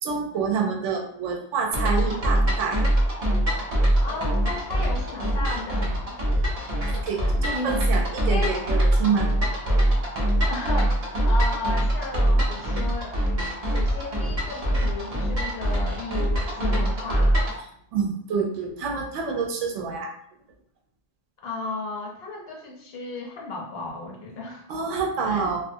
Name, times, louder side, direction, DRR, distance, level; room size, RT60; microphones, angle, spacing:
voice 1, 0.0-2.9 6.9-9.3 17.9-20.1 24.7-25.6, right 5 dB, 80° right, 2 dB, 0.9 m, -27 dB
sound 1, 1.7-17.6, right 1 dB, 50° right, 0.4 m, -23 dB
voice 2, 4.0-6.1 7.5-7.9 8.3-8.6 10.5-13.2 13.7-17.3 21.4-24.6 25.2-25.4, left 3 dB, 65° left, 0 dB, 0.7 m, -34 dB
2.4 x 2.4 x 2.6 m, 0.66 s
omnidirectional pair, 1.3 m